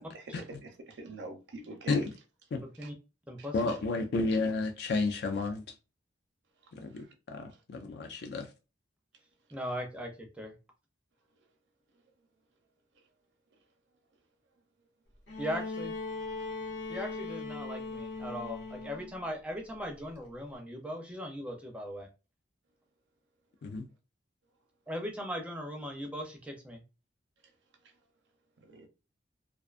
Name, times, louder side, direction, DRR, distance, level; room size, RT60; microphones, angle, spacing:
voice 1, 0.9-2.1 28.6-28.9, right 2 dB, 70° right, 0.6 m, -43 dB
voice 2, 3.5-5.6 6.7-8.5 23.6-23.9, left 3 dB, 60° left, 0.3 m, -32 dB
voice 3, 9.5-10.5 15.4-15.9 16.9-22.1 24.9-26.8, equal, 5° right, 0.5 m, -39 dB
Bowed string instrument, 15.3-19.3 20.5-20.6, left 3 dB, 80° left, 0.9 m, -39 dB
2.5 x 2.3 x 2.4 m
head